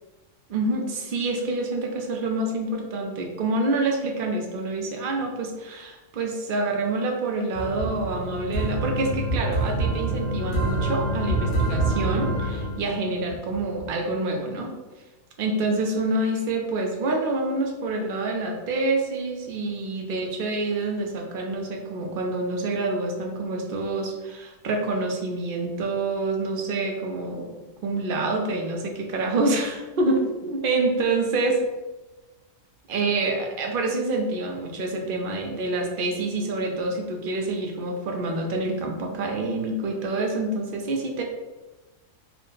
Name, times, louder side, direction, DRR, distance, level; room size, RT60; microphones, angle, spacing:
voice 1, 0.5-14.7 15.4-31.6 32.9-41.2, right 2 dB, 60° right, 2 dB, 0.6 m, -27 dB
sound 1, 7.5-13.9, right 2 dB, 85° left, 1.6 m, -26 dB
3.5 x 2.2 x 3.7 m, 1.1 s
omnidirectional pair, 1.4 m